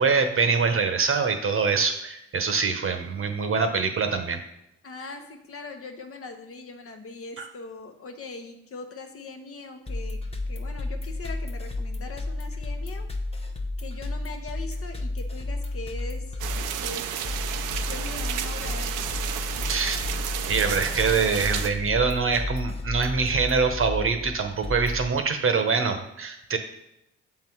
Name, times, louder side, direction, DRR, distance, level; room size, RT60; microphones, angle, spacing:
voice 1, 0.0-4.4 7.4-7.5 19.7-20.0 20.5-26.6, right 5 dB, 40° right, 7 dB, 1.0 m, -24 dB
voice 2, 4.8-10.2 10.5-13.1 13.8-16.4 16.8-17.2 17.9-19.1, left 3 dB, 45° left, 5 dB, 1.0 m, -41 dB
sound 1, 9.9-25.1, left 2 dB, 20° left, 0.9 m, -32 dB
sound 2, 16.4-21.7, right 10 dB, 70° right, 0.6 m, -32 dB
7.1 x 3.9 x 4.5 m, 0.84 s
supercardioid pair, 70°, 32 cm